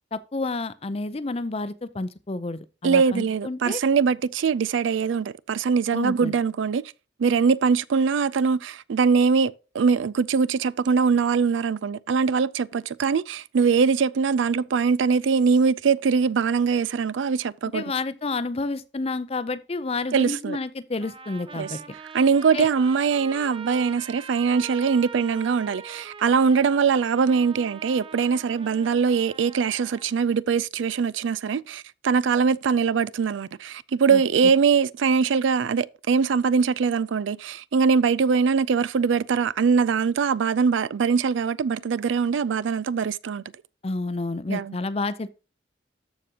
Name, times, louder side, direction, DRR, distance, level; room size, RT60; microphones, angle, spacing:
voice 1, 0.1-3.8 5.9-6.3 17.7-21.8 22.5-22.7 34.1-34.2 43.8-45.3, left 3 dB, 35° left, 0.5 m, -30 dB
voice 2, 2.8-6.8 7.2-17.8 20.1-20.6 21.6-21.7 22.1-43.4 44.5-44.7, right 5 dB, 85° right, 0.4 m, -22 dB
Trumpet, 21.0-30.1, right 5 dB, 30° right, 0.6 m, -42 dB
13.5 x 5.0 x 2.9 m
head